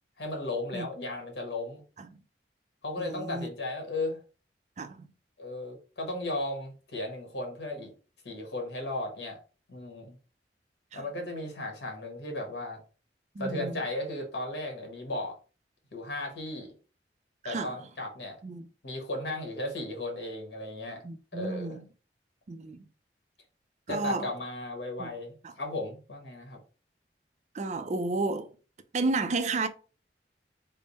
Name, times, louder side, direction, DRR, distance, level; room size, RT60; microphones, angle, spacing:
voice 1, 0.2-1.8 2.8-4.2 5.4-7.9 8.2-9.4 9.7-10.2 10.9-12.8 13.4-15.3 15.9-16.7 17.4-18.4 18.8-21.0 21.3-21.8 23.9-26.6, left 2 dB, 75° left, 1.2 m, -35 dB
voice 2, 3.0-3.5 4.8-5.1 10.9-11.1 13.3-13.8 17.4-17.8 18.4-18.7 21.0-21.9 22.5-22.9 23.9-24.3 25.0-25.1 25.4-25.5 27.5-28.5 28.9-29.7, right 3 dB, 40° right, 0.4 m, -32 dB
3.4 x 2.0 x 4.0 m
head